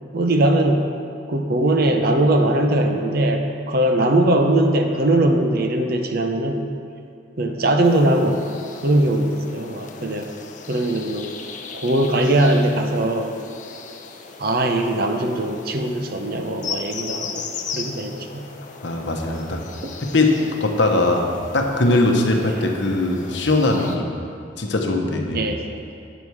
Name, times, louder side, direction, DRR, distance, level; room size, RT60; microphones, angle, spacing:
voice 1, 0.1-0.9 1.3-6.7 7.4-8.4 8.8-10.3 10.7-11.3 11.7-13.3 14.4-18.5 22.6-22.7 25.3-25.6, right 1 dB, 50° right, 4 dB, 0.7 m, -20 dB
sound 1, 7.8-24.0, left 5 dB, 40° left, 0.6 m, -37 dB
voice 2, 18.8-19.6 20.0-21.3 21.5-24.1 24.6-25.4, left 2 dB, 65° left, 2 dB, 0.9 m, -20 dB
8.1 x 7.2 x 4.7 m, 2.4 s
head